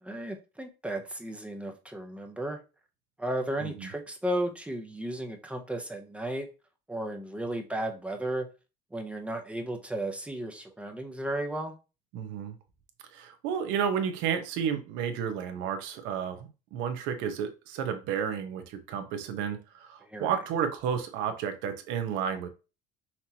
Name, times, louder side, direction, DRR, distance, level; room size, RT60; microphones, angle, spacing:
voice 1, 0.0-2.6 3.2-6.5 6.9-8.5 8.9-11.7 20.1-20.3, right 1 dB, 5° right, 0.6 m, -34 dB
voice 2, 12.1-12.6 13.1-22.5, right 7 dB, 70° right, 1.0 m, -32 dB
5.8 x 3.0 x 2.8 m
cardioid pair, 155°, 20 cm